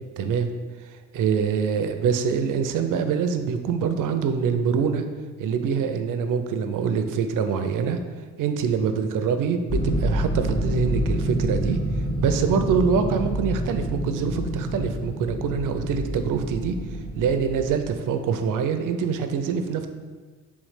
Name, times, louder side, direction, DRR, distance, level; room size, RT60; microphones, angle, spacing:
voice 1, 0.2-0.5 0.8-5.0 5.4-8.0 8.4-11.8 12.2-16.8 17.2-19.9, right 6 dB, 70° right, 7 dB, 0.5 m, -24 dB
sound 1, 9.7-17.8, equal, 15° left, 0.8 m, -27 dB
3.5 x 3.2 x 4.8 m, 1.4 s
cardioid pair, 110°, 33 cm